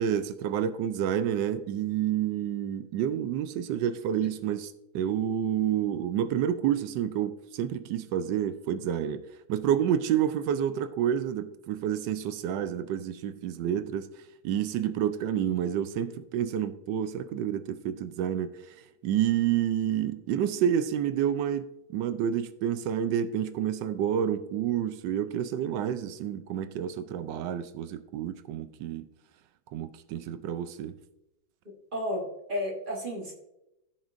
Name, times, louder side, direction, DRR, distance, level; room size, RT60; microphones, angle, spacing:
voice 1, 0.0-9.2 9.5-14.1 14.4-18.7 19.0-29.1 29.7-30.9, right 9 dB, 80° right, 1.2 m, -29 dB
voice 2, 31.6-33.3, left 1 dB, 30° right, 1.2 m, -33 dB
14.0 x 6.1 x 2.5 m
omnidirectional pair, 2.0 m